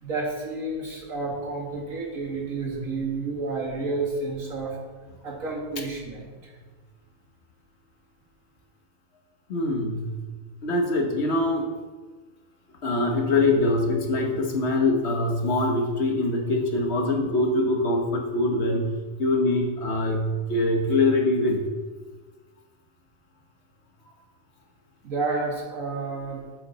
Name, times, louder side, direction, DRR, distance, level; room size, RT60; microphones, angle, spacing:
voice 1, 0.0-4.8 5.2-6.5 25.0-26.4, right 3 dB, 80° right, -1 dB, 2.1 m, -30 dB
voice 2, 9.5-10.1 10.6-11.7 12.8-18.9 19.2-21.6, left 2 dB, 55° left, 2 dB, 1.4 m, -23 dB
7.9 x 7.4 x 4.1 m, 1.4 s
omnidirectional pair, 1.4 m